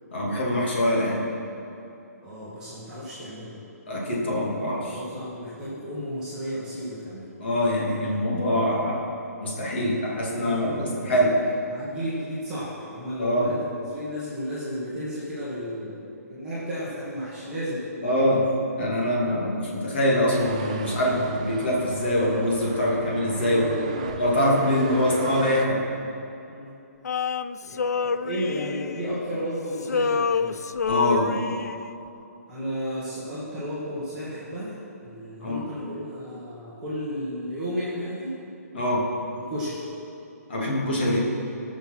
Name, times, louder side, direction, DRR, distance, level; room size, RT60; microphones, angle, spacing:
voice 1, 0.1-1.2 3.9-5.0 7.4-9.0 9.4-11.4 13.2-13.5 18.0-18.4 18.8-23.6 24.2-25.8 30.9-31.4 35.4-35.6 38.7-39.1 40.5-41.2, equal, 40° left, -4 dB, 2.7 m, -24 dB
voice 2, 2.2-3.6 4.9-7.3 9.7-10.0 10.3-18.1 19.1-19.2 23.4-25.3 26.5-26.7 27.6-30.6 32.5-38.4 39.3-39.8, equal, 10° right, -11 dB, 1.5 m, -33 dB
sound 1, 20.3-25.7, right 6 dB, 25° right, 0.4 m, -39 dB
Male singing, 27.0-29.5 29.8-31.9, left 5 dB, 70° left, 0.4 m, -28 dB
18.0 x 6.4 x 6.0 m, 2.8 s
hypercardioid pair, 180°, 9 cm